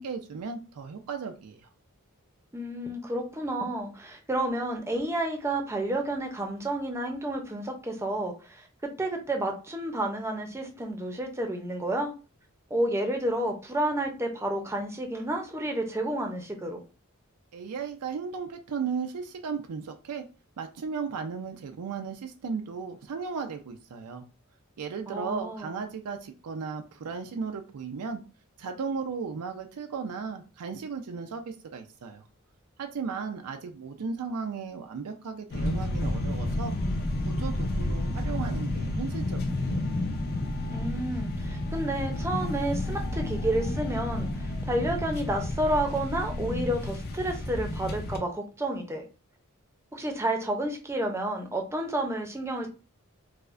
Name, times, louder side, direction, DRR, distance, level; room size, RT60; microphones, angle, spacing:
voice 1, 0.0-1.7 17.5-20.2 20.6-24.2 24.8-28.2 28.6-32.2 32.8-36.7 37.3-39.8, right 5 dB, 90° right, 5 dB, 0.4 m, -35 dB
voice 2, 2.5-12.1 12.7-16.8 25.1-25.7 40.7-49.0 49.9-52.7, right 1 dB, 10° right, 3 dB, 0.5 m, -30 dB
sound 1, 35.5-48.2, left 1 dB, 45° left, 0.5 m, -31 dB
4.7 x 2.1 x 2.5 m, 0.34 s
head